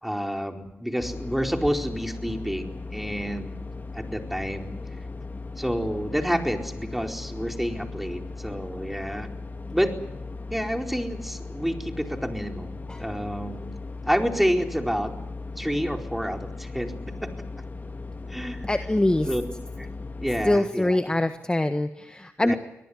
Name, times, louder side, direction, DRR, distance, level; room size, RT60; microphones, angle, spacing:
voice 1, 0.0-3.5 3.9-4.7 5.6-9.3 9.7-10.0 10.5-13.7 14.0-15.1 15.6-16.9 18.3-18.7 19.3-19.4 19.8-19.9 20.2-21.0 22.4-22.6, equal, 5° right, 3 dB, 4.4 m, -28 dB
sound 1, 1.0-20.6, left 3 dB, 35° left, 2.2 m, -37 dB
voice 2, 18.6-19.3 20.4-22.5, left 1 dB, 15° left, 8 dB, 1.5 m, -24 dB
24.0 x 18.5 x 9.7 m, 0.89 s
supercardioid pair, 45°, 5 cm